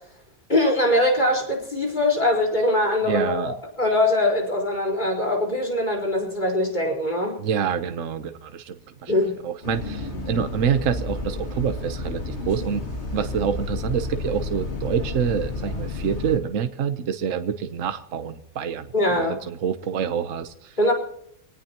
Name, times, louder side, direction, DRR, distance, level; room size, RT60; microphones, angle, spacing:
voice 1, 0.5-7.4 9.1-9.4 18.9-19.4 20.8-20.9, left 1 dB, 30° left, 0 dB, 4.6 m, -22 dB
voice 2, 3.0-3.5 7.4-12.8 13.1-20.8, right 7 dB, 65° right, 9 dB, 1.3 m, -27 dB
Bus, 9.6-16.4, left 2 dB, 50° left, 2.7 m, -31 dB
25.0 x 18.5 x 2.9 m, 0.71 s
omnidirectional pair, 1.5 m